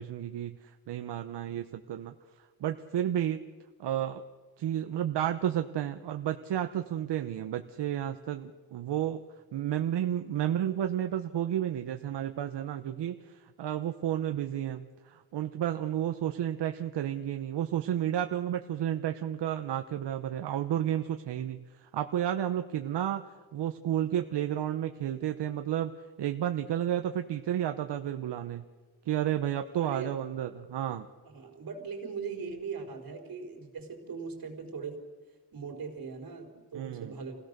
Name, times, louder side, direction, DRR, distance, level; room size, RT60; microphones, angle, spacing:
voice 1, 0.0-3.4 3.8-4.2 4.6-9.2 9.5-23.2 23.5-25.9 26.2-28.6 29.1-31.1 36.7-37.2, right 11 dB, 80° right, 7 dB, 1.0 m, -32 dB
voice 2, 29.8-30.2 31.2-35.0 35.5-37.4, right 5 dB, 55° right, 3 dB, 4.2 m, -40 dB
27.5 x 17.0 x 6.8 m, 1.4 s
wide cardioid pair, 145°, 41 cm